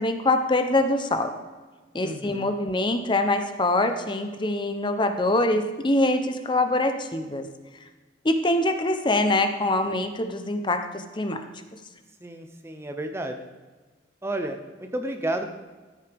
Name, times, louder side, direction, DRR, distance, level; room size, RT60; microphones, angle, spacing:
voice 1, 0.0-1.3 1.9-7.5 8.2-11.4, left 2 dB, 25° left, 7 dB, 0.7 m, -24 dB
voice 2, 2.0-2.5 12.2-13.5 14.2-15.5, right 1 dB, 15° right, 6 dB, 0.6 m, -32 dB
13.5 x 8.9 x 3.5 m, 1.3 s
head